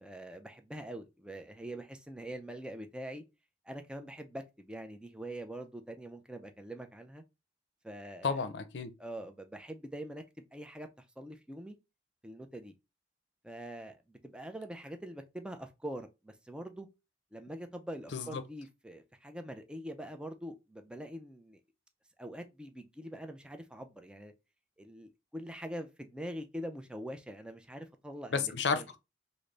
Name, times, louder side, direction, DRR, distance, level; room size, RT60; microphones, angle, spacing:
voice 1, 0.0-3.2 3.6-7.2 7.8-8.4 9.0-10.2 10.5-11.8 12.2-12.7 13.4-16.9 17.3-21.6 22.2-24.3 24.8-28.9, right 1 dB, 5° right, 0.3 m, -44 dB
voice 2, 8.2-8.9 18.1-18.4 28.3-29.0, left 5 dB, 70° left, 0.5 m, -32 dB
3.3 x 2.0 x 3.8 m
head